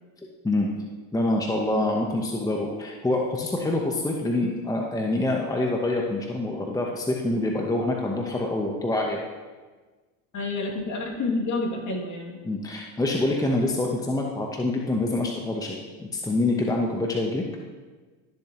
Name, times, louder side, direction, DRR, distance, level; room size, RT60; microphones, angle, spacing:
voice 1, 1.1-9.2 12.4-17.4, left 2 dB, 10° left, 0 dB, 1.0 m, -26 dB
voice 2, 10.3-12.4, left 3 dB, 45° left, -1 dB, 2.5 m, -29 dB
13.0 x 7.1 x 3.0 m, 1.3 s
hypercardioid pair, 85°, 41 cm